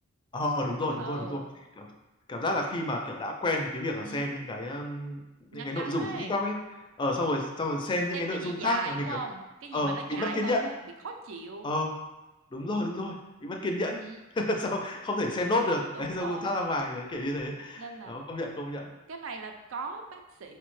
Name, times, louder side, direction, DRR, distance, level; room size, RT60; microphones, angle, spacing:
voice 1, 0.3-1.4 1.8-1.9 2.3-5.2 5.5-6.5 7.0-9.2 9.7-10.7 11.6-11.9 12.5-14.0 14.4-18.9, left 1 dB, 25° left, 2 dB, 0.4 m, -30 dB
voice 2, 1.0-1.4 4.0-4.2 5.5-6.3 8.1-11.8 14.0-14.4 15.9-16.5 17.8-18.1 19.1-20.6, right 4 dB, 75° right, 5 dB, 0.4 m, -39 dB
4.5 x 2.1 x 3.0 m, 1.0 s
head